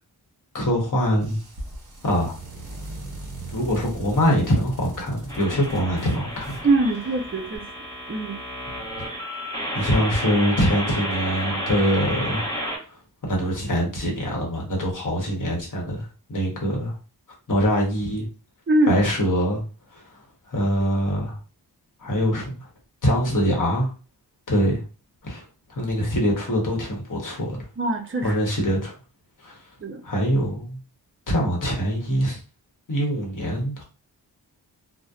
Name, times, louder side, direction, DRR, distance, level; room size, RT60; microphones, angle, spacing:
voice 1, 0.5-1.4 2.0-2.4 3.5-6.6 9.7-12.5 12.9-17.0 17.5-18.3 18.9-19.6 19.9-20.1 20.5-21.4 22.0-22.7 23.0-23.9 24.5-24.8 25.2-27.6 28.2-28.9 29.4-29.6 30.0-30.8 31.3-32.4 32.9-33.8, equal, 50° left, -1 dB, 1.0 m, -24 dB
sound 1, 1.1-7.6, right 1 dB, 50° right, 1.0 m, -39 dB
sound 2, 5.3-12.8, equal, 10° left, 0.9 m, -31 dB
voice 2, 6.6-7.6 8.1-8.4 18.7-19.0 27.8-28.3 29.8-30.0, right 2 dB, 30° right, 3 dB, 0.5 m, -22 dB
2.6 x 2.1 x 2.3 m, 0.35 s
wide cardioid pair, 75°, 41 cm